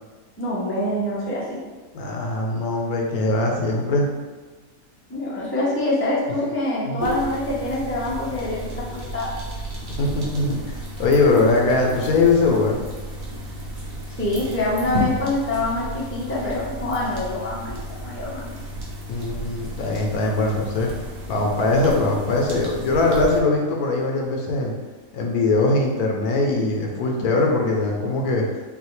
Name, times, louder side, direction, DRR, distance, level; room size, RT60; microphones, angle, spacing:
voice 1, 0.4-1.6 5.1-9.3 14.2-18.5, left 1 dB, 20° left, -6 dB, 0.3 m, -25 dB
voice 2, 1.9-4.1 6.9-7.0 9.8-12.9 19.1-20.9 21.3-24.7 25.1-28.4, left 3 dB, 70° left, 0 dB, 1.1 m, -21 dB
sound 1, 7.0-23.4, equal, 45° right, 0.8 m, -33 dB
5.5 x 2.4 x 3.1 m, 1.3 s
omnidirectional pair, 1.8 m